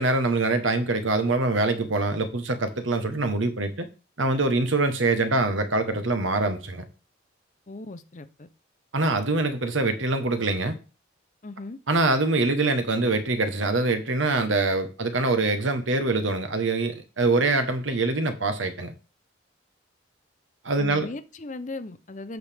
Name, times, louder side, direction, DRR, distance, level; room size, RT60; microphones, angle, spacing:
voice 1, 0.0-3.9 4.2-6.8 8.9-10.7 11.9-18.9 20.6-21.1, right 2 dB, 80° right, 1.2 m, -24 dB
voice 2, 7.7-8.5 11.4-11.8 20.8-22.4, left 2 dB, 40° left, 0.6 m, -37 dB
7.9 x 6.5 x 3.5 m
head